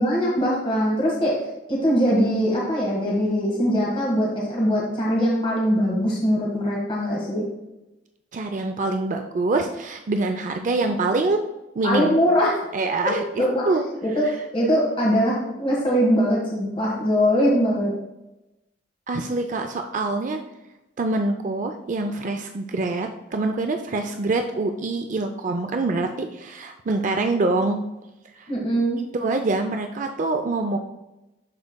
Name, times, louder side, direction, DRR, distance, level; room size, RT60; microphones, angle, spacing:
voice 1, 0.0-1.4 1.7-7.5 11.8-12.6 13.0-13.7 14.0-14.3 14.5-17.9 28.5-29.0, equal, 30° left, -4 dB, 1.5 m, -22 dB
voice 2, 8.3-11.4 11.8-12.2 12.7-13.8 19.1-20.4 21.0-27.8 28.4-28.5 29.1-30.8, right 3 dB, 45° right, 5 dB, 0.4 m, -25 dB
11.5 x 4.7 x 2.2 m, 0.97 s
head